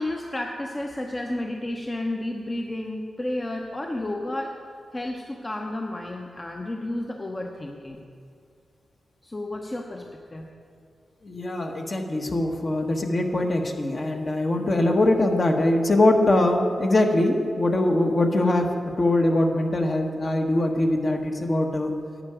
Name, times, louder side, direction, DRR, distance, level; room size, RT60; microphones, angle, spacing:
voice 1, 0.0-4.6 4.9-8.0 9.2-10.5, left 1 dB, 30° left, 1 dB, 0.9 m, -31 dB
voice 2, 11.2-18.7 19.0-21.9, left 1 dB, 45° left, 3 dB, 1.4 m, -22 dB
10.5 x 8.9 x 5.0 m, 2.3 s
cardioid pair, 50°, 0 cm